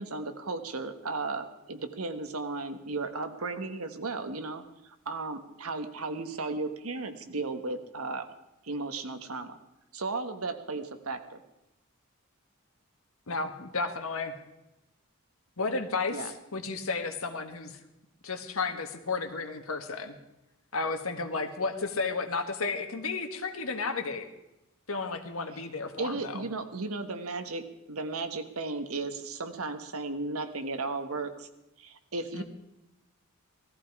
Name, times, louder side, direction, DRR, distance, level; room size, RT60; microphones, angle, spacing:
voice 1, 0.0-4.6 5.0-8.3 8.6-9.6 9.9-11.4 16.1-16.3 26.0-31.5 31.8-32.4, right 3 dB, 80° right, 8 dB, 1.4 m, -35 dB
voice 2, 13.3-14.3 15.6-17.8 18.2-20.2 20.7-24.3 24.9-26.4 32.3-32.4, left 4 dB, 70° left, 7 dB, 1.6 m, -33 dB
17.5 x 14.0 x 4.8 m, 0.93 s
head